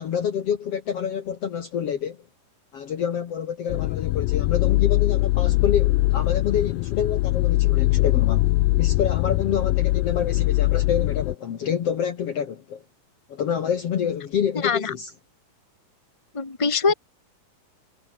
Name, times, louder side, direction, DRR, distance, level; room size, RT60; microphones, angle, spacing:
voice 1, 0.0-2.2 2.7-8.5 8.8-12.8 13.3-15.1 16.9-17.0, left 8 dB, 55° left, 2.1 m, -27 dB
sound 1, 3.7-11.4, left 20 dB, 85° left, 2.2 m, -22 dB
voice 2, 14.6-14.9 16.3-16.9, left 5 dB, 10° left, 1.9 m, -22 dB
omnidirectional pair, 3.9 m